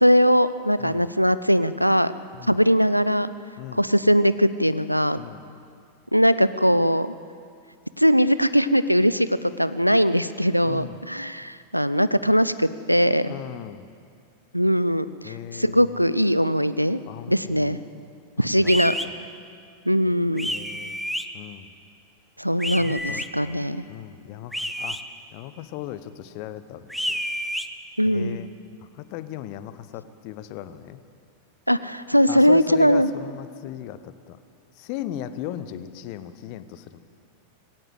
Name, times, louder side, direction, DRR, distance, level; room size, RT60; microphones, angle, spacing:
voice 1, 0.0-2.1 2.5-3.3 3.7-5.2 6.1-7.1 8.0-13.3 14.5-17.0 17.3-17.8 18.4-18.9 19.9-20.5 22.4-23.9 28.0-28.4 31.7-33.1, equal, 90° right, 15 dB, 0.5 m, -20 dB
voice 2, 10.6-11.0 13.2-13.9 15.2-15.9 17.1-17.8 18.4-18.7 19.1-19.2 20.5-21.0 21.3-21.7 22.7-25.0 25.3-27.2 28.1-28.5 28.9-31.0 32.3-34.4 34.7-37.0, left 12 dB, 45° left, 13 dB, 1.0 m, -37 dB
sound 1, 18.6-19.1 20.4-21.2 22.6-23.3 24.5-25.0 26.9-27.7, equal, ahead, 0.9 m, -29 dB
19.5 x 17.0 x 7.9 m, 2.3 s
figure-of-eight pair, 90°, 0 cm